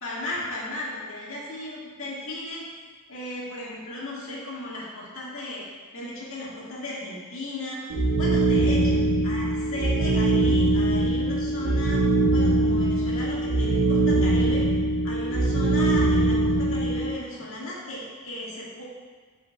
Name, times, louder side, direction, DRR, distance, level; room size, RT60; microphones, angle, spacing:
voice 1, 0.0-2.6 3.1-5.6 5.9-7.9 8.2-12.1 12.3-14.6 15.0-18.8, left 1 dB, 65° left, -6 dB, 1.8 m, -35 dB
sound 1, 7.9-17.1, right 2 dB, 90° right, 0.6 m, -22 dB
10.0 x 5.5 x 2.3 m, 1.5 s
head